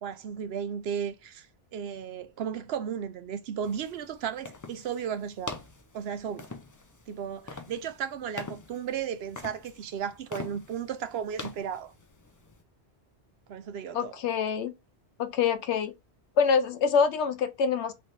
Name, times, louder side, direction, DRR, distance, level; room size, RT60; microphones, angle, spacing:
voice 1, 0.0-1.5 1.7-5.6 5.9-6.5 7.1-11.9 13.5-14.1, right 8 dB, 70° right, 0.8 m, -34 dB
sound 1, 3.6-12.6, left 3 dB, 30° left, 0.4 m, -44 dB
voice 2, 13.9-14.7 15.2-15.9 16.4-17.9, left 6 dB, 85° left, 0.9 m, -25 dB
3.3 x 3.2 x 4.0 m
omnidirectional pair, 1.1 m